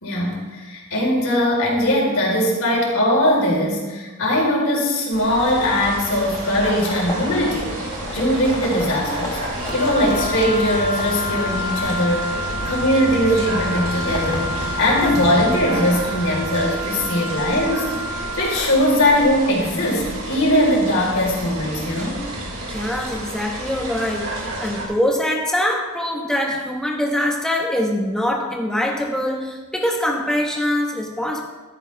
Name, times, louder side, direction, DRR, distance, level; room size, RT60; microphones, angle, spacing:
voice 1, 0.0-9.4 9.7-12.4 12.7-14.5 14.8-17.9 18.4-22.2, left 1 dB, 70° left, -2 dB, 4.4 m, -20 dB
sound 1, 5.1-24.8, right 1 dB, 85° right, 4.8 m, -31 dB
sound 2, 5.6-16.4, left 1 dB, 25° left, 2.1 m, -34 dB
Wind instrument woodwind instrument, 9.6-18.7, equal, 20° right, 4.0 m, -29 dB
voice 2, 22.7-31.4, left 1 dB, 5° left, -1 dB, 1.2 m, -23 dB
15.0 x 13.5 x 3.5 m, 1.2 s
head